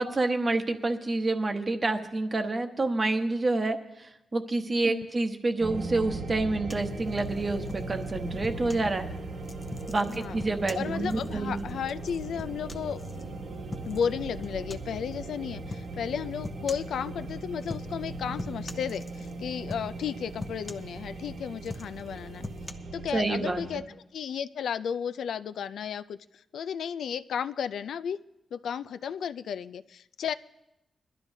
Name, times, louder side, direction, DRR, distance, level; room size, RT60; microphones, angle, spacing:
voice 1, 0.0-9.1 9.9-11.7 23.1-23.6, right 2 dB, 30° right, 6 dB, 0.9 m, -28 dB
sound 1, 5.6-23.8, right 2 dB, 60° right, 1.3 m, -39 dB
sound 2, 6.7-8.9 9.4-13.2 13.7-14.1 14.4-15.0 15.7-15.9 16.4-17.0 17.6-18.1 18.4-19.4 19.7-20.1 20.4-21.3 21.6-22.7, left 2 dB, 20° left, 0.6 m, -42 dB
voice 2, 10.1-10.4 10.7-13.0 13.8-22.5 22.9-23.8 24.1-28.2 28.5-30.3, left 7 dB, 80° left, 13 dB, 0.3 m, -33 dB
22.0 x 12.0 x 2.7 m, 0.88 s
wide cardioid pair, 145°, 0 cm